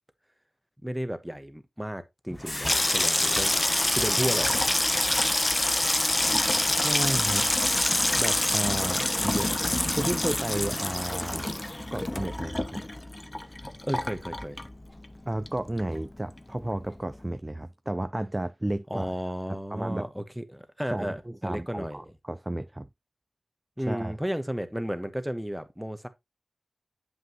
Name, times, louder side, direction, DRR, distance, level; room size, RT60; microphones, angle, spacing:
voice 1, 0.8-3.6 3.9-4.6 9.0-9.1 13.8-14.6 18.9-22.0 23.8-26.1, equal, 5° right, 1.1 m, -33 dB
Water tap faucet / Sink (filling or washing), 2.3-15.2 15.5-16.1 16.4-16.7, left 1 dB, 25° left, 0.7 m, -26 dB
voice 2, 6.7-7.5 8.2-9.5 9.9-11.6 11.9-12.8 15.3-19.1 19.5-20.1 20.9-22.9 23.9-24.1, right 1 dB, 20° right, 0.4 m, -32 dB
7.5 x 5.6 x 2.9 m
cardioid pair, 50°, 0 cm